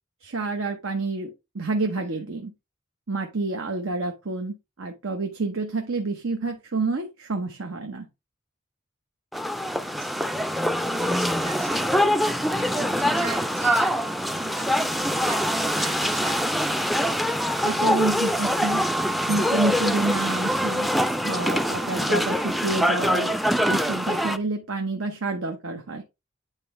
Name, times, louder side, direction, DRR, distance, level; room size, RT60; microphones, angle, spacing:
voice 1, 0.2-2.5 3.1-8.1 17.6-18.9 19.3-20.9 21.2-23.3 23.7-26.0, right 3 dB, 85° right, 1.0 m, -28 dB
sound 1, 9.3-24.4, equal, ahead, 0.3 m, -24 dB
voice 2, 9.8-10.3 10.9-13.9 14.3-16.8, right 2 dB, 35° right, 1.5 m, -38 dB
9.2 x 4.4 x 3.2 m
head